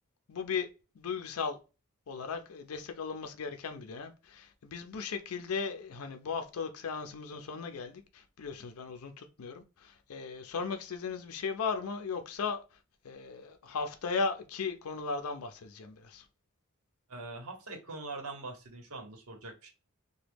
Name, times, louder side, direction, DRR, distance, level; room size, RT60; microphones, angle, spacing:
voice 1, 0.3-0.7 0.9-1.6 2.1-12.8 13.0-16.3, left 5 dB, 85° left, 0.5 m, -37 dB
voice 2, 17.1-19.7, right 3 dB, 80° right, 1.0 m, -43 dB
2.9 x 2.2 x 3.3 m
head